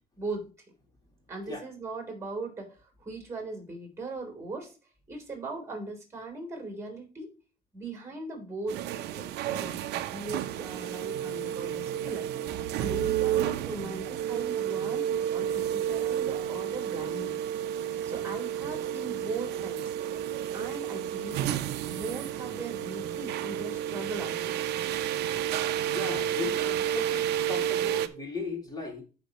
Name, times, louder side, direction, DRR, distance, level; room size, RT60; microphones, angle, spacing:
voice 1, 0.2-0.5 1.3-4.8 5.1-7.3 7.7-9.8 10.1-12.3 12.8-17.4 18.0-19.9 20.5-21.6 21.9-24.6, right 2 dB, 15° right, 3.7 m, -39 dB
sound 1, 8.7-28.1, right 10 dB, 80° right, 0.7 m, -31 dB
voice 2, 25.9-29.0, left 3 dB, 25° left, 3.9 m, -37 dB
13.5 x 5.1 x 3.0 m
cardioid pair, 110°, 17 cm